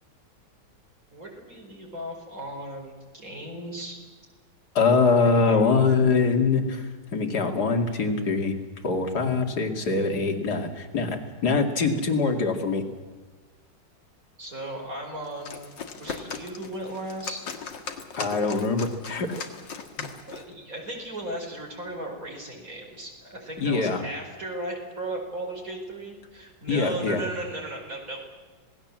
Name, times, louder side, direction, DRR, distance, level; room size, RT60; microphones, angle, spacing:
voice 1, 1.1-4.0 5.4-5.9 14.4-15.6 15.9-17.5 20.3-28.3, right 1 dB, 45° right, 0 dB, 5.3 m, -36 dB
voice 2, 4.7-8.5 8.8-12.8 18.2-19.5 23.6-24.0 26.7-27.2, left 4 dB, 60° left, 4 dB, 3.0 m, -23 dB
sound 1, 15.2-20.5, left 5 dB, 75° left, 2.6 m, -38 dB
27.0 x 19.0 x 7.5 m, 1.4 s
omnidirectional pair, 2.0 m